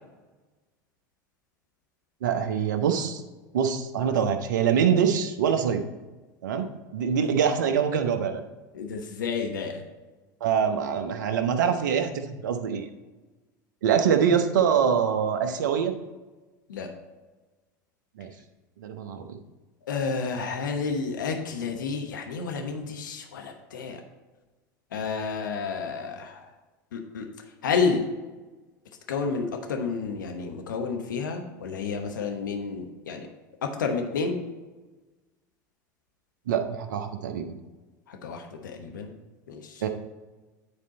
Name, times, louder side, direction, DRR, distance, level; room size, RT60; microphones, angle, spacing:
voice 1, 2.2-3.2 3.5-5.8 6.4-8.4 10.4-12.9 13.8-15.9 18.2-18.3 18.8-19.4 36.5-37.6 39.8-39.9, right 7 dB, 75° right, 7 dB, 0.8 m, -24 dB
voice 2, 8.8-9.8 16.7-16.9 19.9-24.0 24.9-26.4 26.9-27.2 27.6-28.0 29.1-33.3 33.6-34.4 38.2-39.1 39.5-39.6, left 5 dB, 80° left, 4 dB, 1.1 m, -30 dB
9.9 x 4.4 x 4.2 m, 1.2 s
hypercardioid pair, 80°, 10 cm